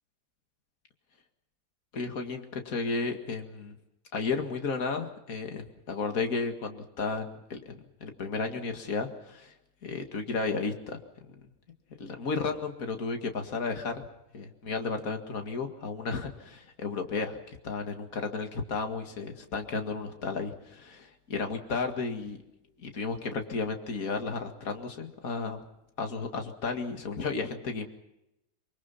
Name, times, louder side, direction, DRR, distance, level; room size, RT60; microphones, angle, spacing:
voice 1, 1.9-3.8 4.1-9.5 9.8-11.0 12.0-14.0 14.3-22.4 22.8-25.6 26.0-27.9, left 4 dB, 55° left, 5 dB, 2.5 m, -33 dB
24.5 x 24.5 x 5.8 m, 0.87 s
omnidirectional pair, 1.8 m